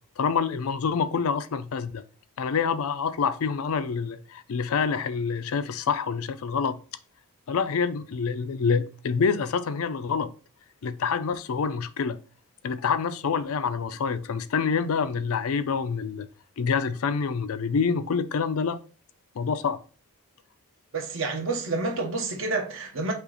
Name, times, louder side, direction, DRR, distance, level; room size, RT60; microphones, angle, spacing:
voice 1, 0.2-2.0 2.4-6.8 7.5-10.3 10.8-12.2 12.6-16.3 16.6-18.8 19.4-19.8, left 5 dB, 70° left, 0.4 m, -27 dB
voice 2, 20.9-23.1, right 3 dB, 60° right, 1.0 m, -29 dB
5.5 x 2.4 x 3.9 m
head